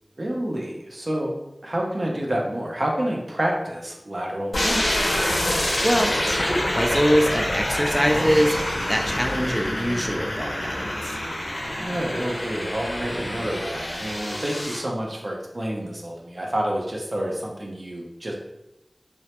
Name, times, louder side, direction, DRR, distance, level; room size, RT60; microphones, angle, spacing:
voice 1, 0.2-1.3 1.6-4.9 11.8-18.4, right 1 dB, 60° right, -1 dB, 0.5 m, -28 dB
sound 1, 4.5-14.8, left 1 dB, 85° left, 0.5 m, -26 dB
voice 2, 5.8-11.2, equal, 5° left, 2 dB, 0.3 m, -23 dB
sound 2, 7.8-10.7, equal, 15° right, 0.7 m, -39 dB
2.1 x 2.0 x 2.8 m, 0.88 s
wide cardioid pair, 45°, 0 cm